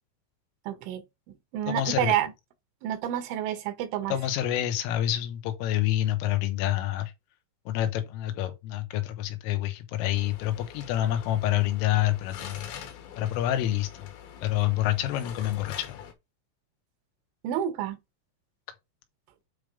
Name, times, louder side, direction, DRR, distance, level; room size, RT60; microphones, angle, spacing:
voice 1, 0.7-1.1 1.5-2.3 2.8-4.2 17.4-18.0, right 11 dB, 80° right, 3.2 m, -29 dB
voice 2, 1.7-2.1 4.1-7.1 7.7-12.7 13.2-14.1 14.4-16.0, left 13 dB, 85° left, 3.7 m, -27 dB
sound 1, 10.1-16.1, left 8 dB, 70° left, 3.5 m, -44 dB
8.9 x 3.4 x 5.2 m
omnidirectional pair, 5.7 m